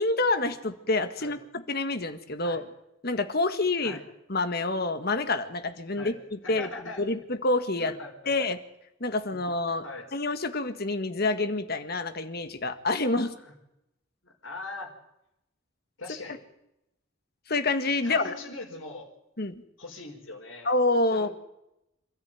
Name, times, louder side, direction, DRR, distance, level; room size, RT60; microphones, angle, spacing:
voice 1, 0.0-2.6 3.0-4.0 4.3-6.7 7.0-7.9 8.3-8.6 9.0-9.8 10.1-13.3 17.5-18.3 19.4-19.6 20.6-21.3, left 2 dB, 50° left, 10 dB, 1.8 m, -27 dB
voice 2, 6.4-7.1 7.8-8.3 9.8-10.1 13.4-13.5 14.2-14.9 16.0-16.4 18.0-19.1 19.8-20.7 21.1-21.3, left 2 dB, 75° left, 1 dB, 5.2 m, -41 dB
27.5 x 13.5 x 9.3 m, 0.86 s
head